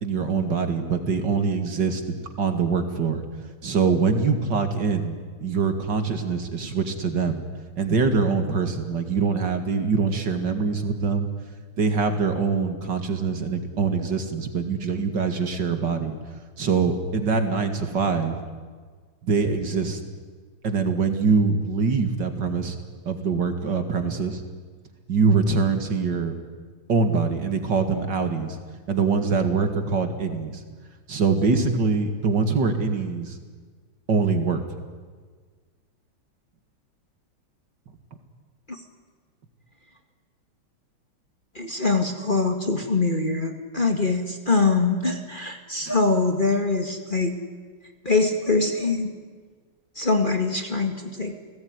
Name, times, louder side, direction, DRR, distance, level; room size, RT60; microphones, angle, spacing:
voice 1, 0.0-3.2 3.6-7.4 7.8-11.3 11.8-16.2 16.6-18.4 19.2-20.0 20.6-22.8 23.1-24.4 25.1-26.3 26.9-28.6 28.9-30.5 31.1-33.4 34.1-34.6, right 5 dB, 55° right, 7 dB, 2.8 m, -24 dB
voice 2, 41.6-47.4 48.0-49.1 50.0-51.4, left 3 dB, 25° left, 4 dB, 1.9 m, -23 dB
30.0 x 19.0 x 9.7 m, 1.5 s
omnidirectional pair, 2.3 m